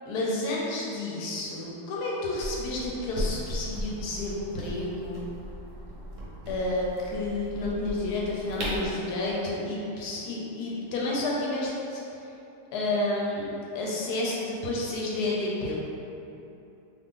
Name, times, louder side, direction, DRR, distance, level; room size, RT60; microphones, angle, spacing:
voice 1, 0.1-5.3 6.5-12.2 12.7-15.8, left 2 dB, 75° left, -4 dB, 1.1 m, -30 dB
sound 1, 2.4-8.9, equal, 60° right, 0.9 m, -37 dB
2.6 x 2.5 x 3.5 m, 2.9 s
omnidirectional pair, 1.8 m